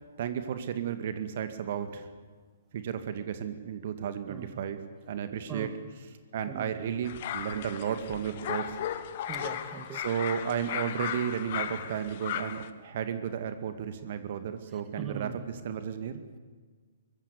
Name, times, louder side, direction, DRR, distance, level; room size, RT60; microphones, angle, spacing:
voice 1, 0.2-2.1 2.7-4.8 5.1-5.7 6.3-8.8 9.9-16.2, right 8 dB, 45° right, 9 dB, 2.0 m, -33 dB
sound 1, 7.0-12.7, left 10 dB, 40° left, 1.6 m, -36 dB
voice 2, 9.3-10.0 15.0-15.4, right 7 dB, 20° right, 7 dB, 2.2 m, -40 dB
24.0 x 23.5 x 7.1 m, 1.5 s
figure-of-eight pair, 125°, 0 cm